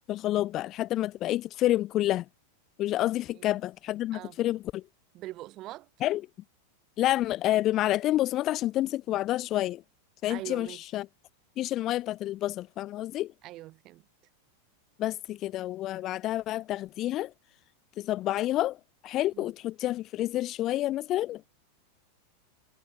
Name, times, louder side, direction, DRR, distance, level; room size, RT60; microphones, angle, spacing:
voice 1, 0.1-2.3 2.8-4.8 6.0-6.2 7.0-9.8 10.2-11.1 11.6-13.3 15.0-17.3 18.0-21.5, left 14 dB, 35° left, 4.6 m, -29 dB
voice 2, 5.1-5.9 10.3-10.8 13.4-14.1 19.3-19.4, right 17 dB, 35° right, 6.8 m, -42 dB
figure-of-eight pair, 90°, 0 cm